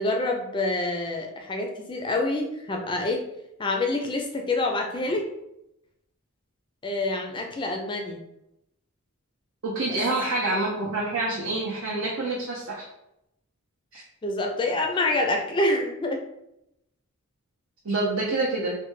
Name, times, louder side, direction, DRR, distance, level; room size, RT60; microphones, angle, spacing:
voice 1, 0.0-3.2 3.6-5.2 6.8-8.2 9.9-10.0 14.2-16.2, left 2 dB, 20° left, 2 dB, 0.4 m, -27 dB
voice 2, 9.6-12.8 13.9-14.0 17.8-18.7, right 2 dB, 70° right, -5 dB, 0.6 m, -27 dB
3.2 x 2.1 x 3.1 m, 0.84 s
head